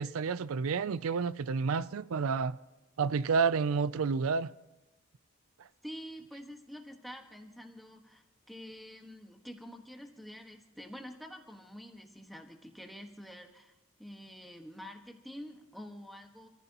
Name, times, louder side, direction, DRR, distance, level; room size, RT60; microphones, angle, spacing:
voice 1, 0.0-2.6 3.0-4.5 5.6-5.7, right 5 dB, 80° right, 0.4 m, -30 dB
voice 2, 5.8-16.5, equal, ahead, 1.4 m, -47 dB
29.0 x 15.0 x 2.9 m
head